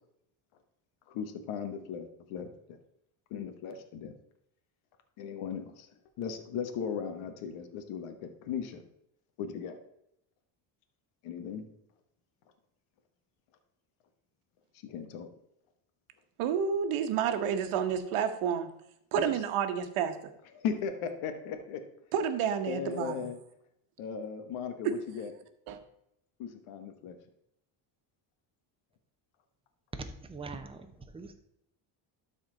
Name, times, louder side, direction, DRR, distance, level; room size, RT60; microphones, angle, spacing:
voice 1, 1.1-2.8 3.3-4.1 5.2-5.9 6.2-8.8 9.4-9.8 11.2-11.7 14.8-15.3 19.1-19.3 20.5-21.8 22.7-23.4 24.0-25.3 26.4-27.2, left 7 dB, 75° left, 7 dB, 1.3 m, -37 dB
voice 2, 16.4-18.7 19.1-20.1 22.1-23.3 24.8-24.9 25.7-25.8, right 8 dB, 80° right, 9 dB, 1.2 m, -30 dB
voice 3, 30.0-31.3, right 3 dB, 10° right, 6 dB, 0.8 m, -43 dB
12.0 x 4.3 x 3.8 m, 0.77 s
cardioid pair, 105°, 50 cm